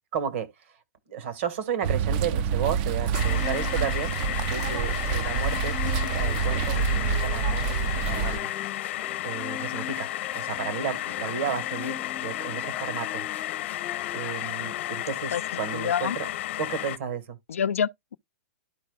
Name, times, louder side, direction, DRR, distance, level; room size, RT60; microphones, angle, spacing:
voice 1, 0.1-0.5 1.1-8.5 9.2-13.3 14.1-16.3 16.6-17.4, right 7 dB, 65° right, 1.5 m, -33 dB
sound 1, 1.8-8.4, right 6 dB, 45° right, 0.4 m, -27 dB
sound 2, 3.0-15.0, left 10 dB, 25° left, 0.4 m, -41 dB
sound 3, 3.1-17.0, left 15 dB, 60° left, 0.9 m, -33 dB
voice 2, 15.7-16.2 17.5-18.2, left 8 dB, 85° left, 0.3 m, -27 dB
12.5 x 4.6 x 2.2 m
hypercardioid pair, 125°, 7 cm